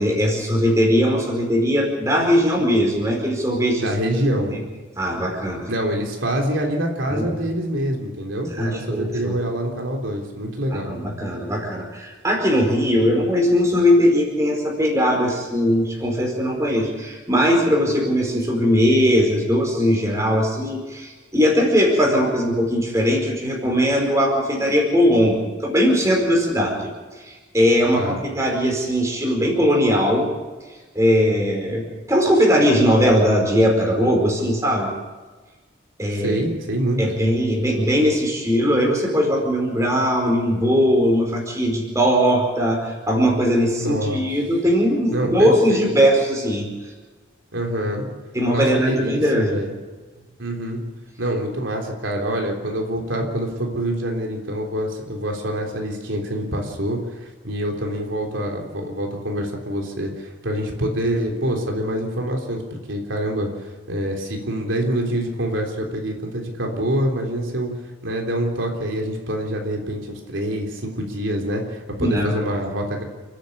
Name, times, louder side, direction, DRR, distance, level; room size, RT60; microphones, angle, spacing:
voice 1, 0.0-3.9 4.5-4.6 5.0-5.7 7.1-7.3 8.5-9.4 10.7-26.9 27.2-30.3 30.9-34.9 36.0-36.4 37.0-46.7 48.3-49.6 72.0-72.3, equal, 15° right, 0 dB, 4.9 m, -19 dB
voice 2, 3.8-4.5 5.7-11.0 28.0-28.2 36.1-37.0 43.8-44.2 45.1-45.9 47.5-48.1 48.5-49.7 50.4-50.8 51.2-62.6 62.9-67.7 68.0-73.0, right 1 dB, 90° right, 1 dB, 3.6 m, -25 dB
30.0 x 10.5 x 8.6 m, 1.3 s
head